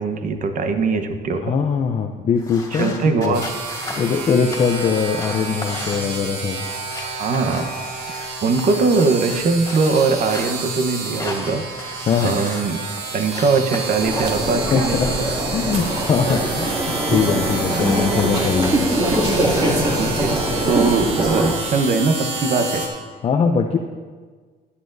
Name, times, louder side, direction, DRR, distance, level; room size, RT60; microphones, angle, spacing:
voice 1, 0.0-1.5 2.7-3.5 7.2-7.7 8.4-11.7 12.2-12.8 13.1-15.1 19.7-22.9, right 4 dB, 50° right, 7 dB, 1.0 m, -21 dB
voice 2, 1.4-2.9 3.2-3.4 4.0-6.6 12.1-12.4 14.7-15.1 15.5-18.9 23.2-23.8, left 6 dB, 35° left, 4 dB, 0.6 m, -21 dB
sound 1, 2.4-8.3 8.6-10.5 11.0-13.0 13.3-15.5 15.8-18.2 18.5-19.8, left 2 dB, 20° left, 2.3 m, -36 dB
sound 2, 3.3-22.9, right 3 dB, 85° right, 1.8 m, -30 dB
sound 3, 14.0-21.5, right 1 dB, 25° right, 2.3 m, -22 dB
15.0 x 9.9 x 2.7 m, 1.5 s
cardioid pair, 110°, 17 cm